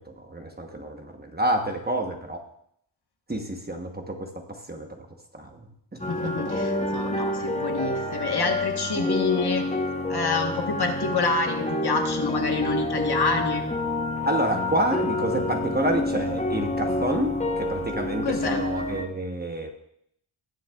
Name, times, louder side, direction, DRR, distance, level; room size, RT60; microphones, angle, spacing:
voice 1, 0.0-2.4 3.3-5.1 5.3-6.3 14.2-19.7, right 1 dB, 20° right, 4 dB, 1.0 m, -29 dB
sound 1, 6.0-19.0, left 1 dB, 15° left, 0.8 m, -28 dB
voice 2, 6.1-9.6 10.1-13.6 18.2-18.6, left 4 dB, 55° left, 4 dB, 1.3 m, -27 dB
19.0 x 7.1 x 2.3 m, 0.70 s
wide cardioid pair, 115°, 47 cm